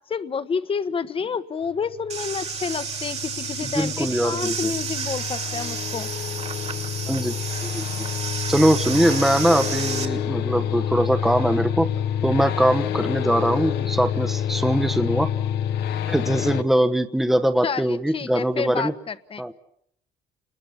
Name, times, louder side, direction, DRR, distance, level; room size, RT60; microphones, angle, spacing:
voice 1, 0.1-6.1 17.6-19.5, left 6 dB, 30° left, 1.4 m, -29 dB
sound 1, 1.8-16.6, left 9 dB, 80° left, 1.2 m, -28 dB
sound 2, 2.1-10.0, right 6 dB, 40° right, 2.7 m, -31 dB
voice 2, 3.6-4.7 7.1-7.8 8.5-11.9 12.2-15.3 16.1-18.9 19.4-19.5, right 1 dB, ahead, 1.2 m, -22 dB
29.5 x 21.0 x 7.1 m
cardioid pair, 110°, 17 cm